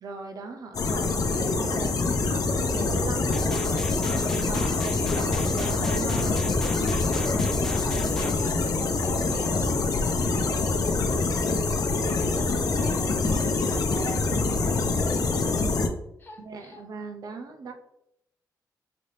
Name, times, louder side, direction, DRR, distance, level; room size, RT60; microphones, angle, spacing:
voice 1, 0.0-3.6 4.2-6.3 13.2-13.7 13.9-14.1 16.4-17.7, right 3 dB, 60° right, 4 dB, 0.6 m, -38 dB
sound 1, 0.7-15.9, left 3 dB, 60° left, 0.6 m, -25 dB
voice 2, 0.8-1.6 4.9-5.3 6.9-13.0 13.4-15.9 16.2-16.8, left 2 dB, 30° left, 2 dB, 0.9 m, -41 dB
sound 2, 3.3-8.3, equal, 5° left, 0.6 m, -35 dB
4.1 x 3.3 x 2.8 m, 0.80 s
wide cardioid pair, 120°, 7 cm